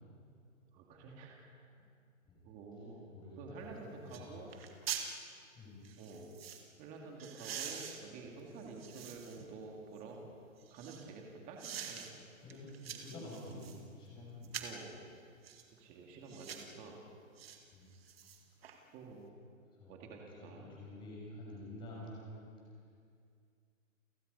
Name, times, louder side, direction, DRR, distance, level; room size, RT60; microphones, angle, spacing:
voice 1, 0.7-1.6 2.4-3.1 3.4-4.5 6.0-6.3 6.8-10.2 10.7-12.1 14.6-14.9 15.8-17.0 18.9-19.3 19.9-20.7, right 4 dB, 20° right, 0 dB, 2.4 m, -49 dB
voice 2, 3.1-4.4 5.5-5.8 12.4-14.6 17.7-17.9 19.7-19.9 20.3-22.4, left 1 dB, 10° left, -4 dB, 6.4 m, -49 dB
sound 1, 3.6-3.7 4.1-4.3 4.5-5.1 5.8-6.6 7.2-9.5 10.0-11.1 11.6-12.1 12.5-13.8 14.4-14.8 15.4-15.7 16.3-16.7 17.4-17.6 17.9-18.8 19.1-19.2, right 8 dB, 45° right, 2.2 m, -45 dB
30.0 x 17.0 x 5.5 m, 2.2 s
hypercardioid pair, 160°, 41 cm